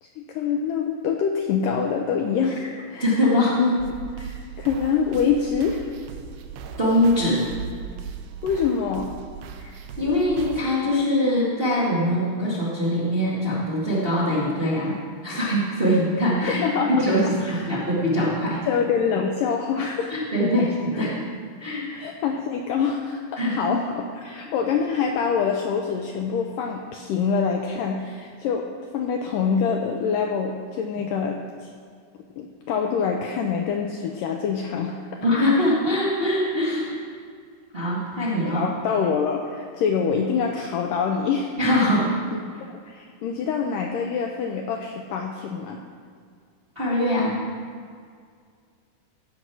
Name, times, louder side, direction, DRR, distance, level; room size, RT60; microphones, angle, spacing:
voice 1, 0.0-3.0 3.6-3.8 4.6-5.9 8.4-9.1 16.4-17.7 18.7-20.3 20.9-21.1 21.9-28.7 28.9-31.7 32.4-35.0 35.4-35.7 38.2-41.5 42.9-45.8, left 6 dB, 80° left, 2 dB, 2.0 m, -25 dB
voice 2, 3.0-3.6 6.8-7.5 9.6-16.6 16.9-18.6 19.8-21.2 21.6-21.9 23.4-23.5 35.2-37.1 37.7-38.7 41.6-42.2 46.7-47.4, left 1 dB, 25° right, -7 dB, 1.2 m, -23 dB
sound 1, 3.8-10.6, right 6 dB, 85° right, 2.7 m, -38 dB
16.0 x 5.4 x 6.1 m, 2.1 s
omnidirectional pair, 4.5 m